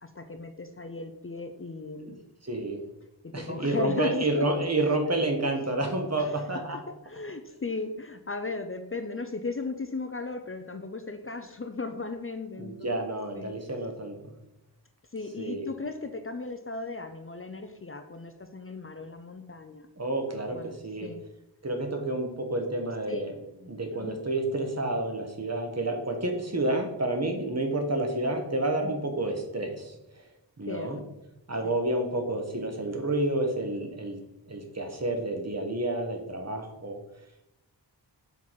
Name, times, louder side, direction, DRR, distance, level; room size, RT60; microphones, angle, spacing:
voice 1, 0.0-2.2 3.2-4.4 4.8-4.9 6.2-6.4 6.7-13.0 13.3-13.5 15.1-19.9 20.5-21.2 23.1-23.2 23.9-24.2 30.7-31.0 31.6-31.8, left 3 dB, 30° left, 7 dB, 0.5 m, -36 dB
voice 2, 2.4-2.8 3.3-6.8 12.6-14.1 15.4-15.7 20.0-20.6 20.8-21.1 21.6-23.3 23.7-29.9 30.6-31.0 31.5-34.2 34.5-37.0, right 2 dB, 35° right, 3 dB, 1.3 m, -29 dB
5.8 x 4.1 x 4.6 m, 0.88 s
wide cardioid pair, 60°, 43 cm